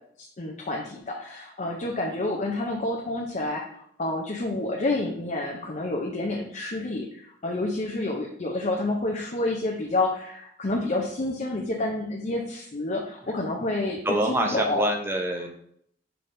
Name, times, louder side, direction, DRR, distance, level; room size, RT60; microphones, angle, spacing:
voice 1, 0.2-3.7 4.0-14.9, left 2 dB, 40° left, -1 dB, 0.6 m, -29 dB
voice 2, 14.0-15.5, right 1 dB, 15° right, 3 dB, 0.5 m, -25 dB
5.7 x 3.4 x 2.6 m, 0.68 s
head